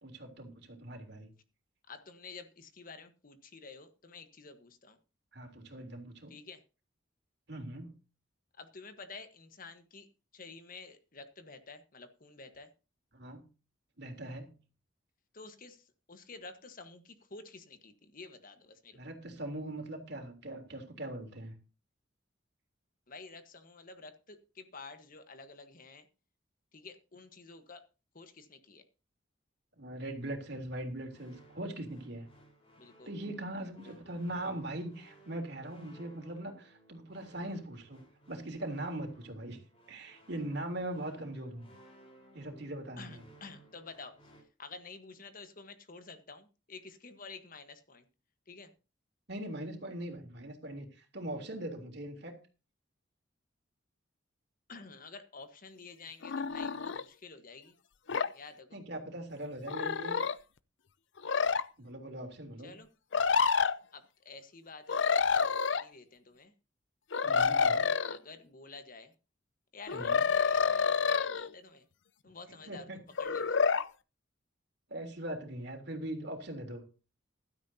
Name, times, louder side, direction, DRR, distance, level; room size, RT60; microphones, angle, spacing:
voice 1, 0.0-1.3 5.3-6.4 7.5-7.9 13.1-13.4 14.0-14.5 18.9-21.5 29.8-32.3 33.1-39.6 39.9-41.7 42.3-43.2 49.3-52.4 58.7-60.2 61.8-62.7 67.2-67.9 69.9-70.2 72.5-73.0 74.9-76.9, right 1 dB, 60° right, 4 dB, 3.3 m, -41 dB
voice 2, 1.9-5.0 6.3-6.6 8.6-10.1 10.3-12.7 15.3-19.0 23.1-26.1 26.7-27.8 28.1-28.8 32.8-33.1 33.8-34.0 41.4-41.5 43.0-44.1 44.6-48.0 48.5-48.7 54.7-57.7 58.3-58.8 62.6-62.9 63.9-66.5 68.0-69.1 69.7-71.9 72.2-73.6, left 4 dB, 45° left, 9 dB, 1.3 m, -50 dB
sound 1, 31.1-44.4, right 1 dB, 30° left, 4.6 m, -60 dB
sound 2, 56.2-57.0 58.1-58.3 59.7-60.3 61.2-61.6 63.1-63.8 64.9-65.8 67.1-68.2 69.9-71.5 73.2-73.9, left 5 dB, 70° left, 0.6 m, -28 dB
15.5 x 12.5 x 2.8 m, 0.32 s
head